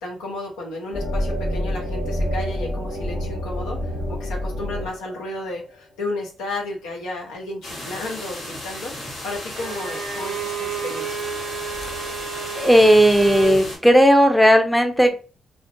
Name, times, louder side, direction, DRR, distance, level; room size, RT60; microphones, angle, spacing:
voice 1, 0.0-11.2, left 2 dB, 90° left, 0 dB, 0.6 m, -33 dB
sound 1, 0.9-5.7, equal, 35° left, 1.0 m, -27 dB
sound 2, 7.6-13.8, left 1 dB, 70° left, 1.2 m, -35 dB
Bowed string instrument, 9.5-13.7, right 6 dB, 85° right, 0.5 m, -30 dB
voice 2, 12.6-15.1, equal, 5° left, 6 dB, 0.5 m, -15 dB
2.4 x 2.1 x 2.5 m, 0.36 s
supercardioid pair, 50°, 0 cm